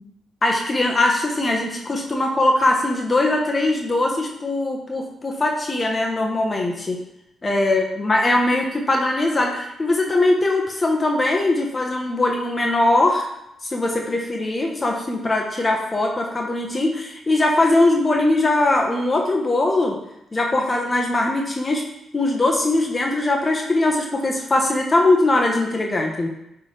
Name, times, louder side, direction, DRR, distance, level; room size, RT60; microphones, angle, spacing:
voice 1, 0.4-7.0 7.4-13.3 13.6-20.0 20.3-21.8 22.1-26.3, left 2 dB, 30° left, 0 dB, 1.2 m, -21 dB
9.3 x 3.6 x 3.4 m, 0.84 s
supercardioid pair, 50°, 0 cm